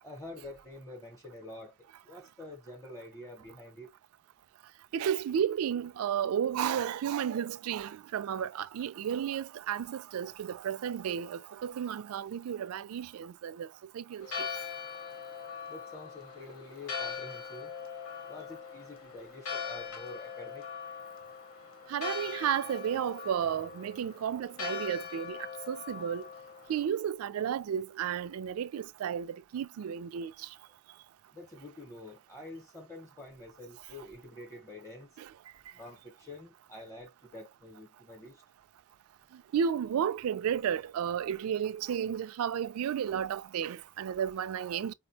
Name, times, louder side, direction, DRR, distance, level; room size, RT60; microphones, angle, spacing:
voice 1, 0.0-1.8 2.0-3.9 15.7-17.7 18.3-20.7 31.3-35.1 35.7-38.4, left 2 dB, 15° left, 0.7 m, -47 dB
voice 2, 4.9-13.7 13.9-14.5 21.9-25.4 25.7-26.2 26.7-30.3 39.5-44.9, right 8 dB, 85° right, 0.3 m, -32 dB
Church bell, 14.2-26.9, left 6 dB, 85° left, 1.0 m, -41 dB
4.8 x 2.1 x 2.7 m
head